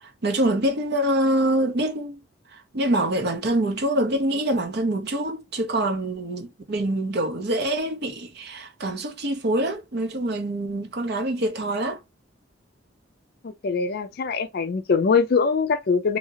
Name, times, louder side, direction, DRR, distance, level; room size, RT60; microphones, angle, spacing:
voice 1, 0.0-2.2 2.5-12.0, right 1 dB, 60° right, 0.7 m, -25 dB
voice 2, 13.4-16.2, left 5 dB, 55° left, 0.4 m, -22 dB
2.8 x 2.7 x 2.7 m
head